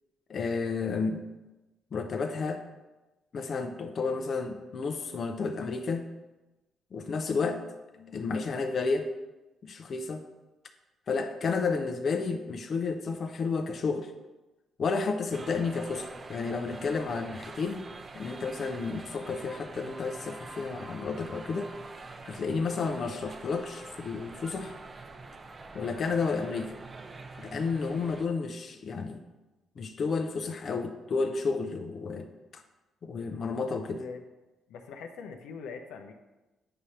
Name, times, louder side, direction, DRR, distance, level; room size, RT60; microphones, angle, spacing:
voice 1, 0.3-1.3 1.9-2.6 3.3-6.1 6.9-7.6 7.9-9.1 9.6-10.2 11.1-14.1 14.8-17.9 18.1-21.7 22.2-24.7 25.7-26.7 27.4-29.2 29.8-32.6 33.0-34.0, left 4 dB, 50° left, 6 dB, 0.6 m, -31 dB
sound 1, 15.3-28.3, right 3 dB, 30° right, 0.6 m, -45 dB
voice 2, 34.7-36.1, left 5 dB, 90° left, 4 dB, 0.7 m, -42 dB
8.8 x 3.3 x 5.6 m, 1.1 s
cardioid pair, 90°, 0 cm